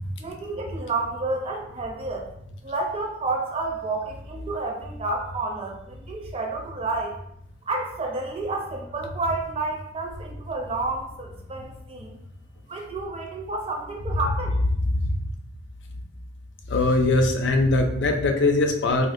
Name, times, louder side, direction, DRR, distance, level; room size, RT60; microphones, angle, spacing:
voice 1, 0.2-2.3 2.6-7.2 7.7-12.1 12.7-14.6, right 3 dB, 35° right, 1 dB, 0.5 m, -30 dB
voice 2, 16.7-19.1, left 2 dB, 80° left, 4 dB, 0.4 m, -21 dB
3.4 x 2.5 x 2.5 m, 0.74 s
head